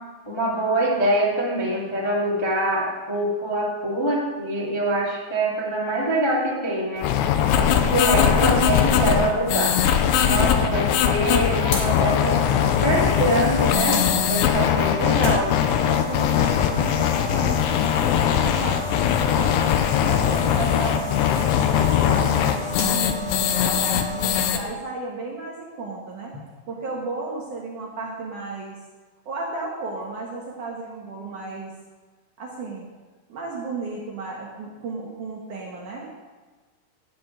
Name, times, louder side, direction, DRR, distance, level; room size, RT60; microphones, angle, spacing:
voice 1, 0.2-7.1 7.6-9.7 10.2-15.5, right 1 dB, 25° left, -5 dB, 0.5 m, -24 dB
sound 1, 7.0-24.6, left 9 dB, 80° left, 3.0 m, -21 dB
sound 2, 10.5-24.5, left 4 dB, 50° left, 1.9 m, -33 dB
voice 2, 15.7-19.6 19.9-26.4 26.7-28.8 29.3-31.7 32.4-32.8 33.3-36.1, right 3 dB, 65° right, -2 dB, 2.1 m, -34 dB
11.0 x 6.0 x 8.7 m, 1.3 s
omnidirectional pair, 5.3 m